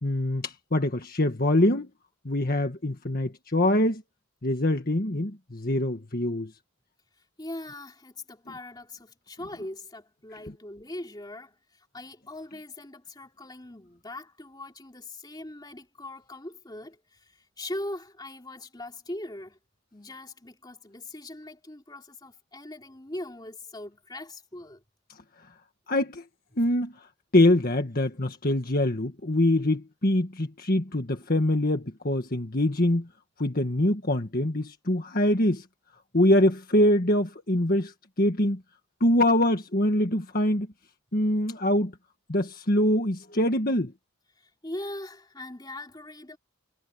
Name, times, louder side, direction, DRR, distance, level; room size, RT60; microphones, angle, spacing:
voice 1, 0.0-1.9 2.2-4.0 4.4-6.5 25.9-26.2 26.6-33.1 33.4-35.6 36.1-38.6 39.0-40.7 41.1-41.9 42.3-43.9, left 1 dB, 45° left, 1.7 m, -24 dB
voice 2, 7.4-19.6 19.9-24.8 44.4-46.4, left 1 dB, 20° left, 3.0 m, -41 dB
head